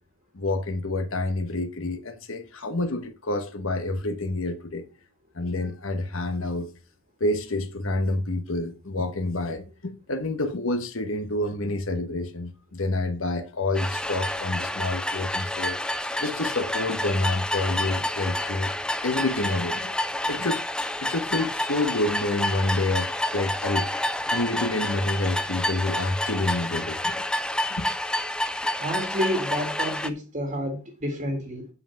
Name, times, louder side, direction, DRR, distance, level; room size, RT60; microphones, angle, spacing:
voice 1, 0.3-4.8 5.3-6.7 7.2-15.8 16.2-18.7 19.0-20.0 20.3-20.6 21.0-23.9 24.3-27.2 27.7-27.9, left 2 dB, 65° left, 1.1 m, -28 dB
sound 1, 13.7-30.1, left 1 dB, 5° left, 0.4 m, -29 dB
voice 2, 28.8-31.7, equal, 35° right, 1.7 m, -29 dB
8.2 x 5.7 x 5.8 m
head